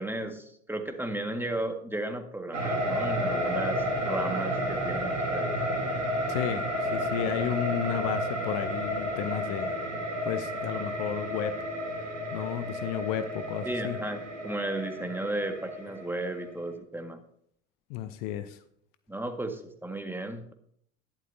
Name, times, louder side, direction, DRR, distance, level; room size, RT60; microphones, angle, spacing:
voice 1, 0.0-5.5 13.7-17.2 19.1-20.5, right 1 dB, 5° right, 5 dB, 1.8 m, -34 dB
sound 1, 2.5-16.7, equal, 90° right, 2.2 m, -31 dB
voice 2, 6.3-9.7 10.2-11.6 12.3-14.0 17.9-18.6, left 10 dB, 60° left, 12 dB, 0.9 m, -32 dB
11.5 x 11.0 x 2.7 m, 0.67 s
hypercardioid pair, 65°, 36 cm